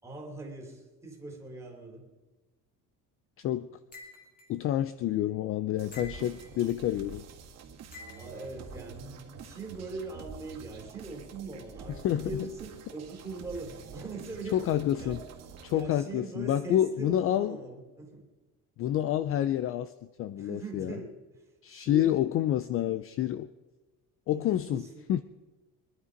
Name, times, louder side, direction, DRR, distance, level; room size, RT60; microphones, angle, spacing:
voice 1, 0.0-2.1 8.1-14.7 15.0-15.2 15.7-18.2 20.3-22.1 24.3-25.1, right 3 dB, 10° right, 0 dB, 3.1 m, -41 dB
voice 2, 3.4-3.7 4.5-7.3 11.9-12.3 14.5-15.2 15.6-17.6 18.8-19.9 20.2-21.0 21.6-23.5 24.3-25.2, left 12 dB, 40° left, 14 dB, 0.4 m, -28 dB
sound 1, 3.9-4.5 5.9-6.6 7.9-8.5, left 3 dB, 25° left, 2.9 m, -48 dB
sound 2, 5.8-15.8, right 5 dB, 45° right, 2.1 m, -47 dB
23.0 x 11.0 x 5.2 m, 1.2 s
cardioid pair, 175°, 35 cm